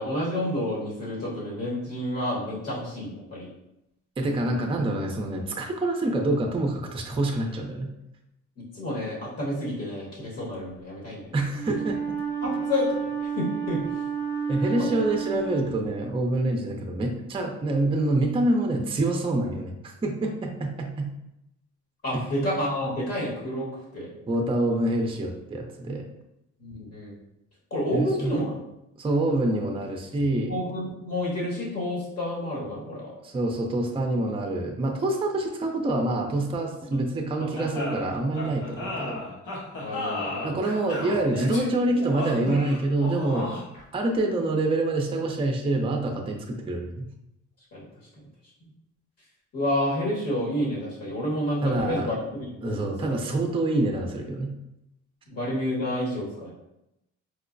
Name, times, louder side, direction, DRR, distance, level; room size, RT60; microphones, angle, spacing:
voice 1, 0.0-3.5 4.4-4.7 8.6-11.3 12.4-13.8 14.6-14.9 22.0-24.1 26.6-27.2 27.7-28.6 30.5-33.1 36.9-37.0 37.4-37.9 39.8-40.6 47.7-47.8 49.5-53.1 55.3-56.5, left 1 dB, 55° left, -5 dB, 1.4 m, -30 dB
voice 2, 4.2-7.9 11.3-12.2 14.5-19.8 20.0-21.1 22.1-22.2 24.3-26.0 27.9-28.4 29.0-30.6 33.2-39.2 40.4-43.5 43.9-47.1 51.6-52.2 52.6-54.5, right 2 dB, 20° right, 2 dB, 0.5 m, -26 dB
Wind instrument woodwind instrument, 11.5-16.3, right 7 dB, 20° left, 0.9 m, -31 dB
sound 1, 37.6-43.8, left 2 dB, 85° left, 1.0 m, -34 dB
4.5 x 2.0 x 2.5 m, 0.87 s
cardioid pair, 90°, 30 cm